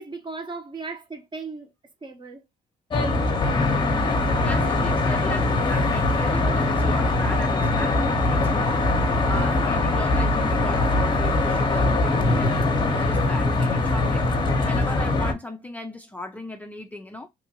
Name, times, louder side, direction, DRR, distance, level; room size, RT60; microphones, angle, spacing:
voice 1, 0.0-1.7 2.0-2.4 13.2-13.3, right 4 dB, 25° right, 0.9 m, -36 dB
Traffic noise roadway noise, 2.9-15.3, left 2 dB, 25° left, 0.8 m, -22 dB
voice 2, 4.2-12.6 12.9-17.3, left 2 dB, 10° left, 0.4 m, -36 dB
3.0 x 2.5 x 2.8 m
cardioid pair, 110°, 17 cm